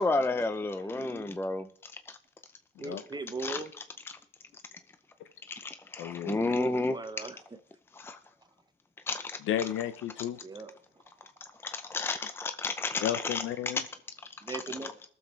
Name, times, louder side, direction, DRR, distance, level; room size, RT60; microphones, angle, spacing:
voice 1, 0.0-1.7 3.4-3.6 5.5-7.0 8.0-8.2 9.1-9.4 11.6-13.4 13.7-13.8 14.5-14.6, left 3 dB, 10° left, 0.5 m, -31 dB
voice 2, 0.9-1.4 2.8-3.7 6.4-7.4 10.4-10.7 14.4-15.0, right 3 dB, 20° right, 0.9 m, -39 dB
voice 3, 6.0-6.5 9.5-10.4 13.0-13.8, left 11 dB, 80° left, 0.7 m, -33 dB
21.5 x 7.2 x 3.2 m
cardioid pair, 90°, 20 cm